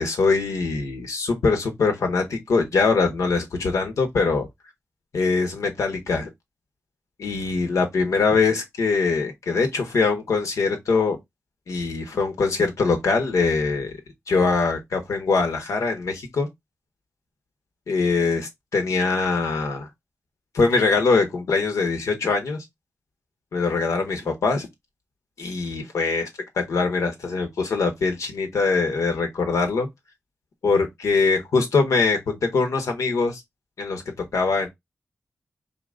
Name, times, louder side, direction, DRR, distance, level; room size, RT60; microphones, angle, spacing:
voice 1, 0.0-4.5 5.1-6.3 7.2-11.2 11.7-13.9 14.3-16.5 17.9-19.9 20.5-22.6 23.5-24.7 25.4-26.3 26.6-29.9 30.6-33.4 33.8-34.0 34.3-34.7, left 4 dB, 90° left, 1.1 m, -22 dB
3.9 x 2.9 x 3.7 m
cardioid pair, 50°, 5 cm